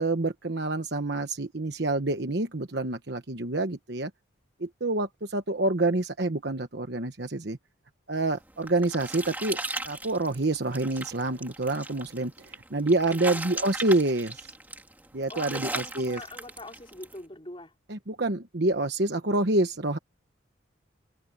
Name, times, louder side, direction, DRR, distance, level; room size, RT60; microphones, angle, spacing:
voice 1, 0.0-4.1 4.6-7.6 8.1-9.6 9.8-14.5 15.1-16.2 17.9-20.0, right 2 dB, 55° right, 1.2 m, -27 dB
sound 1, 8.3-17.2, right 2 dB, 10° right, 2.2 m, -38 dB
voice 2, 13.1-13.7 15.3-17.7, left 1 dB, 25° left, 4.8 m, -43 dB
head